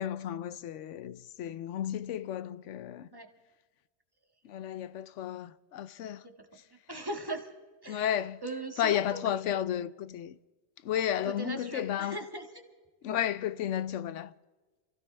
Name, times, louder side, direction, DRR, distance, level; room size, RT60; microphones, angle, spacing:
voice 1, 0.0-3.1 4.4-6.2 7.9-8.4 8.8-10.4 10.8-12.2 13.0-14.3, left 10 dB, 90° left, 1.0 m, -33 dB
voice 2, 6.2-6.6 6.9-7.5 7.8-8.1 8.4-9.6 11.2-12.5, right 2 dB, 20° right, 1.7 m, -39 dB
27.5 x 15.5 x 3.4 m
omnidirectional pair, 1.2 m